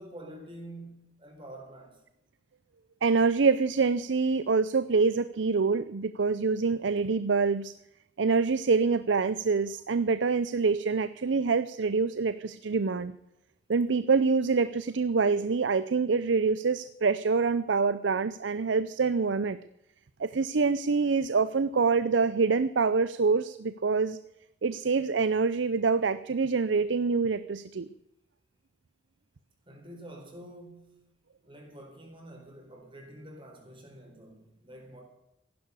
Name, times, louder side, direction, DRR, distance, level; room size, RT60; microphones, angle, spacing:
voice 1, 0.0-2.0 29.7-31.1 31.4-35.0, right 1 dB, 30° right, 2 dB, 4.5 m, -47 dB
voice 2, 3.0-7.7 8.2-13.1 13.7-19.6 20.2-24.2 24.6-27.9, right 4 dB, 85° right, 15 dB, 0.6 m, -26 dB
15.5 x 11.5 x 6.8 m, 0.87 s
head